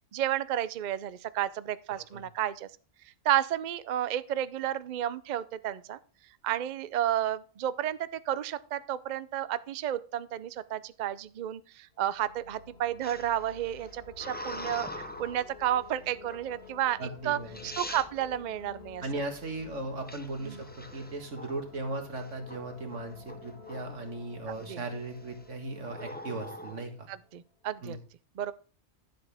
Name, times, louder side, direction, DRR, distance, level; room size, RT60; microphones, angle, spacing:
voice 1, 0.1-2.7 3.2-6.0 6.4-17.0 17.2-19.0 20.4-20.6 24.7-24.8 27.1-28.0 28.4-28.5, right 11 dB, 75° right, 16 dB, 0.4 m, -32 dB
sound 1, 11.9-27.5, left 6 dB, 50° left, 1.7 m, -52 dB
sound 2, 13.0-15.5 16.3-16.7 17.3-17.4 17.5-18.1 20.1-21.7 22.2-22.6 22.9-24.1 24.6-25.0 25.8-26.8, left 1 dB, 10° left, 0.4 m, -43 dB
voice 2, 17.0-17.7 19.0-27.1 27.8-28.0, right 2 dB, 60° right, 5 dB, 2.0 m, -37 dB
11.0 x 7.7 x 3.4 m, 0.38 s
omnidirectional pair, 1.4 m